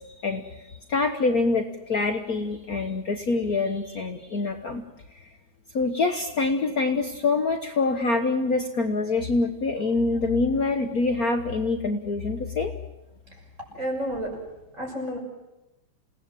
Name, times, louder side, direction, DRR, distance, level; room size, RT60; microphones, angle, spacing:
voice 1, 0.0-4.8 5.1-5.3 5.7-12.7, left 3 dB, 50° left, 4 dB, 1.7 m, -25 dB
voice 2, 13.7-14.3 14.8-15.2, equal, 35° right, 1 dB, 7.0 m, -30 dB
28.0 x 18.0 x 7.7 m, 0.98 s
omnidirectional pair, 2.3 m